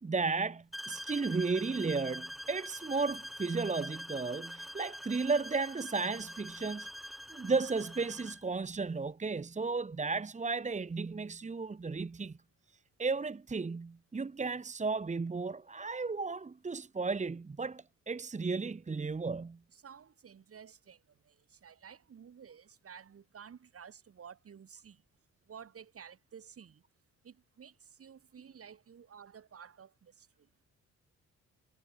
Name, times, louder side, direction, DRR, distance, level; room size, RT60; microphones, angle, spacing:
voice 1, 0.0-6.9 7.3-12.4 13.0-19.6, right 4 dB, 25° right, 1.6 m, -34 dB
sound 1, 0.7-8.5, equal, ahead, 6.9 m, -44 dB
voice 2, 19.7-25.0 25.5-26.8 27.2-30.5, right 7 dB, 50° right, 5.4 m, -53 dB
cardioid pair, 90°, 30 cm